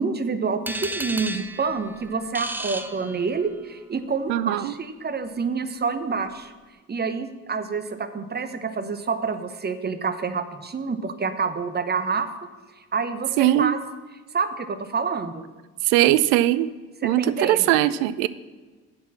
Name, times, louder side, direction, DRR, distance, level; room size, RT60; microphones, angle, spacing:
voice 1, 0.0-6.5 6.9-12.3 12.9-13.8 14.3-15.4 17.0-17.7, right 5 dB, 25° right, 11 dB, 0.9 m, -27 dB
sound 1, 0.7-3.7, right 2 dB, 5° right, 0.6 m, -33 dB
voice 2, 4.3-4.7 13.4-13.8 15.8-16.7 17.0-18.3, right 14 dB, 70° right, 15 dB, 0.5 m, -20 dB
9.5 x 4.3 x 7.1 m, 1.3 s
figure-of-eight pair, 45°, 37 cm